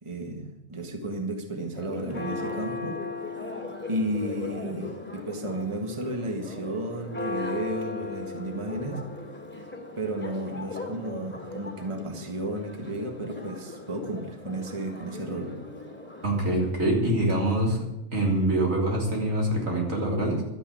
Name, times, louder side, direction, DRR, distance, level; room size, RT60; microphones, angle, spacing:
voice 1, 0.0-3.0 3.3-3.5 3.9-9.0 10.0-15.6, right 1 dB, 25° right, 4 dB, 1.6 m, -33 dB
Church bell, 1.7-16.7, left 3 dB, 10° left, 2.6 m, -38 dB
voice 2, 16.2-17.8 18.1-20.4, right 1 dB, 80° right, -1 dB, 3.7 m, -25 dB
12.0 x 9.9 x 8.4 m, 0.93 s
omnidirectional pair, 1.4 m